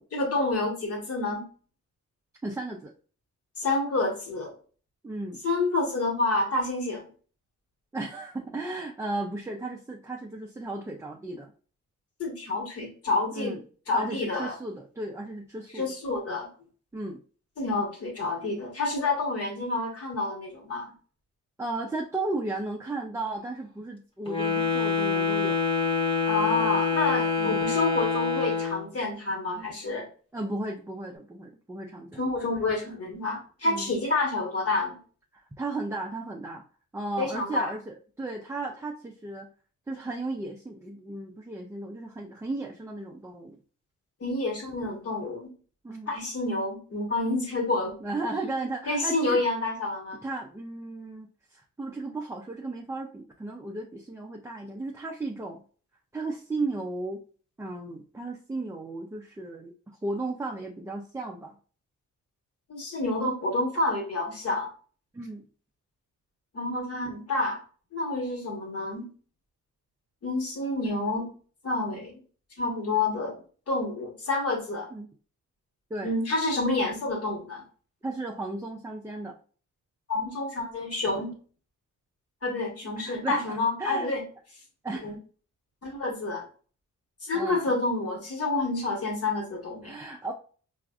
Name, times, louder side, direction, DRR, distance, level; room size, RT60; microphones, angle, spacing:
voice 1, 0.1-1.5 3.6-4.5 5.4-7.0 12.2-13.6 13.9-14.6 15.7-16.5 17.6-20.9 26.3-30.0 32.2-35.0 37.2-37.7 44.2-45.5 46.1-48.0 48.9-50.2 62.7-64.7 66.5-67.6 67.9-69.1 70.2-71.3 71.6-72.1 72.6-73.4 73.7-74.9 76.0-77.6 80.1-81.3 82.4-84.2 85.0-85.1 85.8-86.4 87.2-89.9, left 2 dB, 50° left, 1 dB, 1.3 m, -28 dB
voice 2, 2.4-2.9 5.0-5.4 7.9-11.5 13.3-13.6 13.9-16.0 16.9-17.2 21.6-25.6 27.4-27.7 30.3-32.3 33.6-33.9 35.3-36.6 36.9-39.5 39.9-43.6 45.8-46.1 48.0-49.4 50.2-55.6 56.1-57.2 57.6-59.7 60.0-61.5 65.1-65.4 74.9-75.1 75.9-76.1 78.0-79.4 83.0-84.1 84.8-85.1 87.3-87.7 89.8-90.3, right 2 dB, 10° right, 0 dB, 0.3 m, -35 dB
Wind instrument woodwind instrument, 24.3-28.9, left 5 dB, 15° left, 0.9 m, -26 dB
4.6 x 2.4 x 2.3 m, 0.41 s
wide cardioid pair, 135°, 30 cm